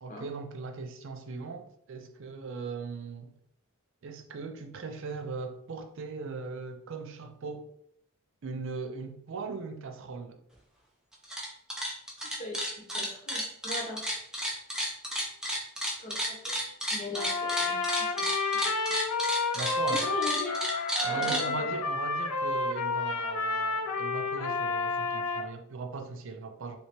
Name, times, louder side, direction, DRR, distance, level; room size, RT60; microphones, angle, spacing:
voice 1, 0.0-3.4 4.0-7.7 8.4-10.4 19.5-20.1 21.0-26.8, right 4 dB, 60° right, 0.4 m, -39 dB
sound 1, 11.1-11.5 11.7-21.4, equal, 5° right, 0.5 m, -32 dB
voice 2, 12.4-14.0 16.0-16.6 16.9-18.2 19.9-20.6 21.0-21.7, left 1 dB, 35° left, 0.8 m, -39 dB
Trumpet, 17.1-25.5, left 3 dB, 90° left, 0.5 m, -30 dB
3.3 x 2.9 x 2.9 m
head